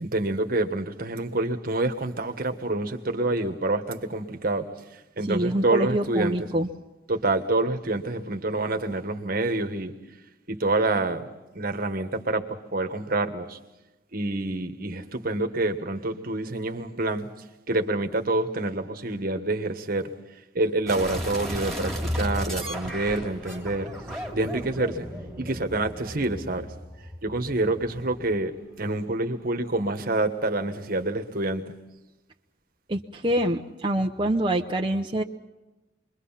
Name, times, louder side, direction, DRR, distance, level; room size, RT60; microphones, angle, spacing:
voice 1, 0.0-4.7 5.2-6.5 7.1-9.9 10.5-11.2 11.5-13.6 14.1-17.3 17.7-20.1 20.5-23.9 24.3-25.1 25.4-26.7 27.2-28.5 28.8-31.7, right 2 dB, 50° right, 1.4 m, -27 dB
voice 2, 5.3-6.7 32.9-35.2, right 1 dB, 25° right, 0.8 m, -25 dB
sound 1, 20.9-28.4, equal, ahead, 3.5 m, -35 dB
sound 2, 23.3-30.7 31.3-31.4, equal, 25° left, 8.0 m, -48 dB
27.0 x 22.5 x 5.8 m
head